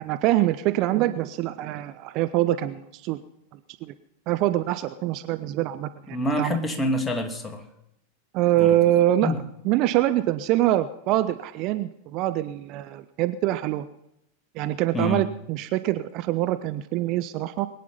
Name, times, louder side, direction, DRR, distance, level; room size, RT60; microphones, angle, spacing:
voice 1, 0.0-3.2 3.8-3.9 4.3-6.6 8.3-9.3 9.7-13.9 14.6-17.7, right 14 dB, 40° right, 12 dB, 0.6 m, -24 dB
voice 2, 6.1-7.7 8.6-8.8 9.2-9.4 14.9-15.3, left 1 dB, 10° left, 5 dB, 2.2 m, -27 dB
22.0 x 9.3 x 5.5 m, 0.81 s
figure-of-eight pair, 90°, 0 cm